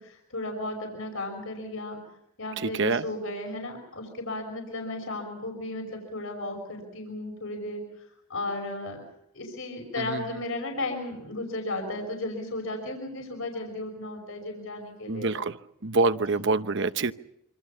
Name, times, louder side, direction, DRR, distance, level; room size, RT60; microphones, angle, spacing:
voice 1, 0.0-2.0 2.4-9.0 9.3-15.4 16.3-16.5, left 2 dB, 70° left, 3 dB, 5.8 m, -35 dB
voice 2, 2.6-3.0 10.1-10.2 15.1-15.6 15.8-17.1, right 3 dB, 55° right, 11 dB, 1.0 m, -25 dB
26.5 x 26.5 x 5.7 m, 0.78 s
head